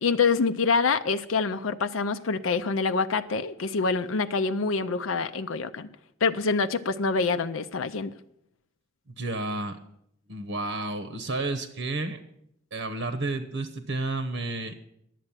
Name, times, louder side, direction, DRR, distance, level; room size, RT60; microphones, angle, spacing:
voice 1, 0.0-5.9 6.2-8.1, left 4 dB, 85° left, 9 dB, 0.6 m, -26 dB
voice 2, 9.2-9.8 10.3-12.2 12.7-14.8, right 2 dB, 75° right, 9 dB, 1.0 m, -31 dB
11.0 x 7.7 x 8.8 m, 0.75 s
head